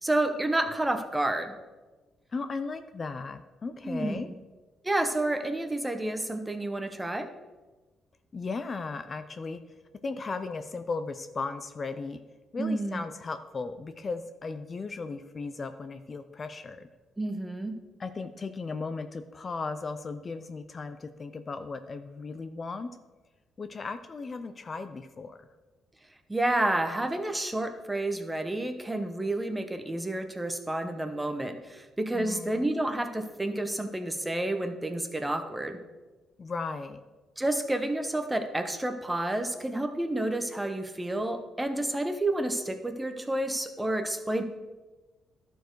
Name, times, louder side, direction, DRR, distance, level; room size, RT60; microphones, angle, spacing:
voice 1, 0.0-1.6 3.8-4.2 4.8-7.3 12.6-13.0 17.2-17.8 26.3-35.8 37.4-44.4, right 1 dB, 10° right, 7 dB, 0.9 m, -30 dB
voice 2, 2.3-4.3 8.3-9.6 10.0-12.2 12.5-16.9 18.0-22.9 23.6-25.5 32.1-32.8 36.4-37.0, left 4 dB, 35° left, 9 dB, 0.5 m, -36 dB
12.0 x 4.5 x 4.6 m, 1.2 s
cardioid pair, 90°, 0 cm